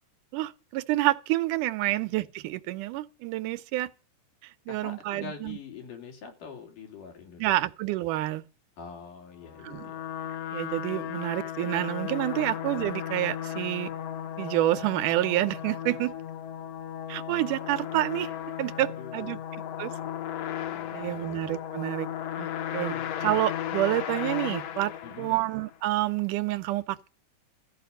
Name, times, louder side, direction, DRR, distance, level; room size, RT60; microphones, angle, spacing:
voice 1, 0.3-3.9 4.7-5.6 7.4-8.4 9.6-9.9 10.5-13.9 14.4-16.1 17.1-18.3 18.6-19.4 19.8-19.9 20.9-22.1 22.4-24.9 25.2-27.1, right 16 dB, 85° right, 2.4 m, -28 dB
voice 2, 4.7-7.5 8.8-10.0 18.7-19.4 20.6-21.3 22.9-23.3 25.0-25.4, left 5 dB, 90° left, 4.6 m, -45 dB
trumpet frullato, 9.4-25.8, left 10 dB, 65° left, 1.9 m, -35 dB
14.5 x 5.2 x 9.1 m
omnidirectional pair, 3.6 m